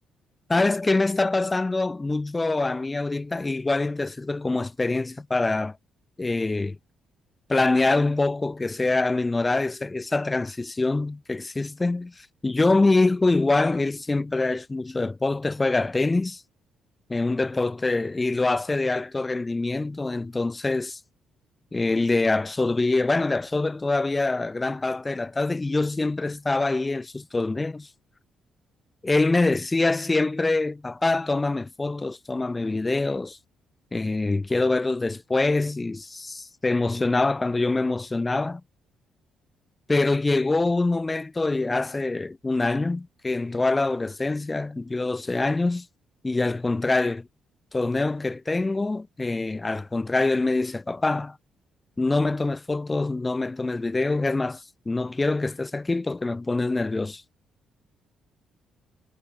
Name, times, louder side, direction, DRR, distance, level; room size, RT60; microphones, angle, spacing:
voice 1, 0.5-5.8 6.2-6.8 7.5-12.1 12.4-16.4 17.1-21.0 21.7-27.9 29.0-33.4 33.9-38.6 39.9-45.9 46.2-47.3 47.7-51.4 52.0-57.2, left 3 dB, 20° left, 6.4 m, -25 dB
cardioid pair, 90°, 0 cm